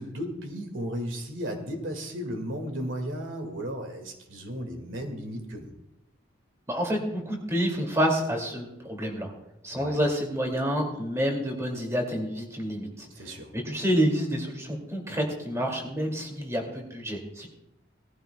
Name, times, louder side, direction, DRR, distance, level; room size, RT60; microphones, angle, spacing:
voice 1, 0.0-5.7 9.7-10.0 13.1-13.5, equal, 85° right, 4 dB, 2.0 m, -35 dB
voice 2, 6.7-9.3 9.6-17.5, equal, 15° right, 1 dB, 2.4 m, -28 dB
18.5 x 14.5 x 2.3 m, 0.88 s
head